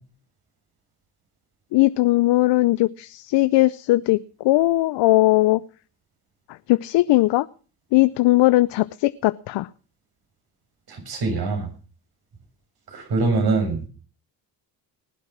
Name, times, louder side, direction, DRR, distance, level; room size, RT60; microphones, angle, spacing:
voice 1, 1.7-5.6 6.7-7.5 7.9-9.7, left 18 dB, 70° left, 15 dB, 0.7 m, -19 dB
voice 2, 10.9-11.7 12.9-13.8, right 3 dB, 55° right, 3 dB, 7.0 m, -23 dB
19.5 x 8.2 x 6.0 m, 0.39 s
supercardioid pair, 70°, 44 cm